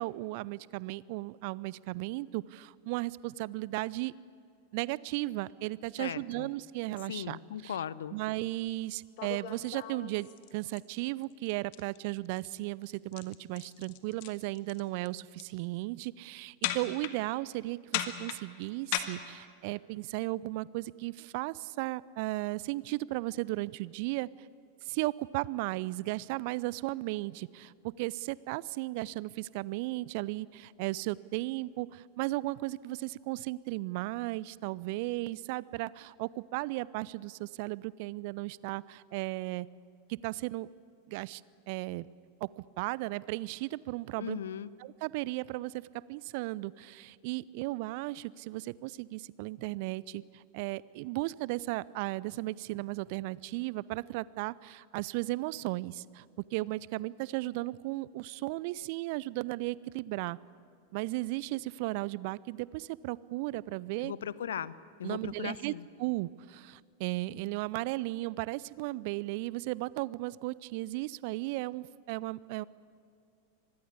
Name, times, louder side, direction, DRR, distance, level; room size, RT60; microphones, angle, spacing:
voice 1, 0.0-4.1 4.7-7.4 7.6-7.8 8.1-24.3 24.8-39.7 40.1-40.7 41.1-41.4 41.7-42.1 42.4-44.4 44.8-56.2 56.5-60.4 60.9-64.1 65.0-65.7 66.0-72.6, right 20 dB, 45° right, 22 dB, 0.5 m, -35 dB
voice 2, 6.0-6.5 7.1-8.2 44.2-44.7 64.0-65.9, left 9 dB, 65° left, 19 dB, 0.7 m, -38 dB
sound 1, 8.6-8.7 9.2-10.8 11.2-11.5 11.7-12.0 12.3-12.5 12.8-14.8 15.1-15.5 16.6-17.1 17.9-19.0, left 14 dB, 45° left, 1.6 m, -36 dB
25.0 x 21.0 x 8.5 m, 2.3 s
figure-of-eight pair, 90°, 0 cm